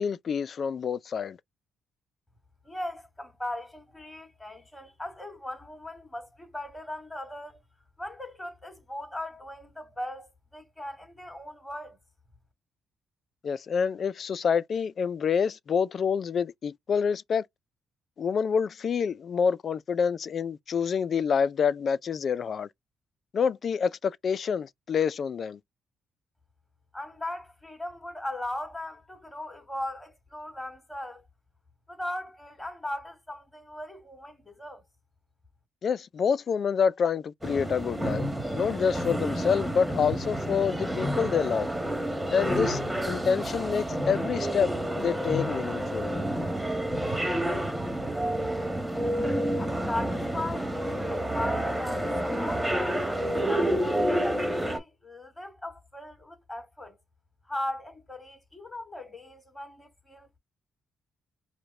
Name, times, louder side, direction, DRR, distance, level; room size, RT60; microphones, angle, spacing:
voice 1, 0.0-1.4 13.4-17.5 18.2-22.7 23.3-25.6 35.8-38.3 38.5-41.7 42.3-46.1, left 6 dB, 50° left, 0.4 m, -27 dB
voice 2, 2.6-7.6 8.0-12.0 26.9-31.3 31.9-34.8 49.6-57.0 57.4-60.4, left 1 dB, 15° left, 2.9 m, -38 dB
sound 1, 37.4-54.8, right 1 dB, 5° right, 1.6 m, -29 dB
5.0 x 2.1 x 3.2 m
cardioid pair, 90°, 0 cm